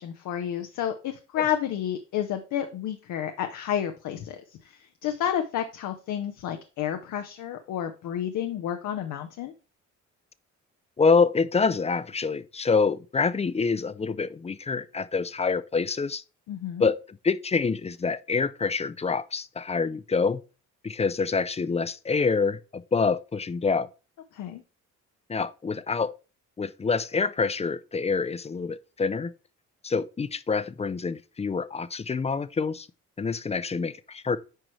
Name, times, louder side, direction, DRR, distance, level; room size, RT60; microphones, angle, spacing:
voice 1, 0.0-9.5 16.5-16.9 24.3-24.6, left 10 dB, 80° left, 0.8 m, -31 dB
voice 2, 11.0-16.2 16.8-20.4 20.8-23.9 25.3-26.1 26.6-29.3 29.8-32.9 33.2-34.4, left 4 dB, 20° left, 0.4 m, -26 dB
9.0 x 4.8 x 3.1 m
cardioid pair, 90°, 30 cm